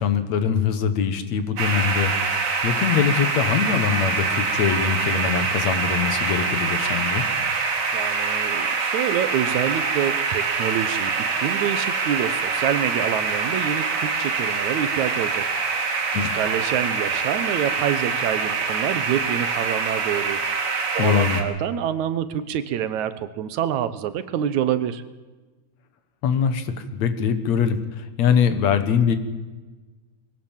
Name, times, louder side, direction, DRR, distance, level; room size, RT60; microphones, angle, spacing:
voice 1, 0.0-2.3 2.6-7.3 16.1-16.3 21.0-21.4 26.2-29.2, left 7 dB, 70° left, 10 dB, 2.6 m, -22 dB
sound 1, 1.6-21.4, right 4 dB, 65° right, 3.5 m, -25 dB
voice 2, 7.9-11.1 11.4-15.5 15.8-20.4 20.9-25.0, right 10 dB, 80° right, 13 dB, 2.4 m, -27 dB
21.5 x 17.0 x 7.4 m, 1.3 s
omnidirectional pair, 3.3 m